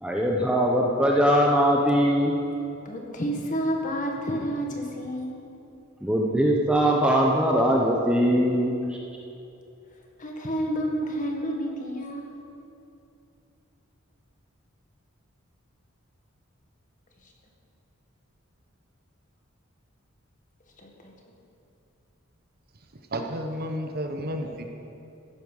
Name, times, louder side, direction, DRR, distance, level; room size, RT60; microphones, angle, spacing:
voice 1, 0.0-2.4 6.0-8.7, equal, 5° right, -1 dB, 0.9 m, -21 dB
voice 2, 2.9-5.5 10.2-12.3 17.2-17.3 20.8-21.1, equal, 40° left, 1 dB, 1.8 m, -30 dB
voice 3, 22.9-24.6, equal, 45° right, 4 dB, 1.1 m, -32 dB
14.5 x 11.0 x 5.6 m, 2.8 s
head